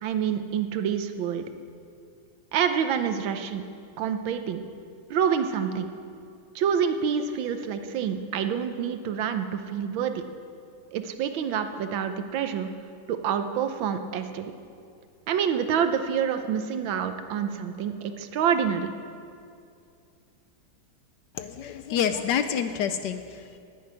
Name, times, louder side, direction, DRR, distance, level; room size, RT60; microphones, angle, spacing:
voice 1, 0.0-1.4 2.5-3.6 4.0-4.6 5.1-5.9 6.5-10.2 10.9-12.7 13.1-14.5 15.3-18.9, right 7 dB, 80° right, 8 dB, 1.6 m, -27 dB
voice 2, 21.3-23.6, left 8 dB, 75° left, 10 dB, 1.1 m, -28 dB
10.5 x 9.3 x 9.5 m, 2.4 s
omnidirectional pair, 2.2 m